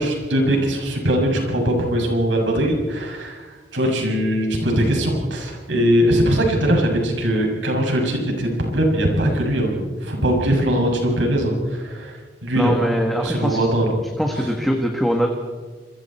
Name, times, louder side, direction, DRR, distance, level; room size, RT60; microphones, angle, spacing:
voice 1, 0.0-12.7 13.2-13.8 14.3-14.5, equal, 85° right, 1 dB, 6.9 m, -21 dB
voice 2, 12.6-13.6 14.2-15.3, equal, ahead, 2 dB, 1.7 m, -22 dB
28.5 x 22.5 x 4.5 m, 1.5 s
head